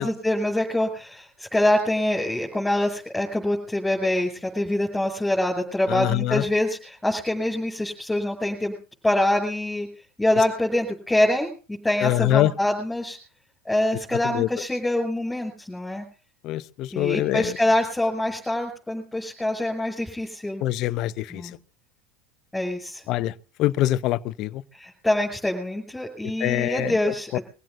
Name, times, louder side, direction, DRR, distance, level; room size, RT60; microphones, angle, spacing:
voice 1, 0.0-8.7 9.0-9.9 10.2-13.2 13.6-16.0 16.9-20.6 21.3-21.5 22.5-23.0 24.7-27.3, left 1 dB, 5° left, 6.4 m, -25 dB
voice 2, 5.9-6.4 12.0-12.5 14.3-14.5 16.4-17.5 20.6-21.4 23.1-23.3 23.6-24.5 26.4-26.9 27.3-27.4, left 15 dB, 55° left, 0.7 m, -24 dB
24.0 x 16.0 x 2.6 m
hypercardioid pair, 90°, 0 cm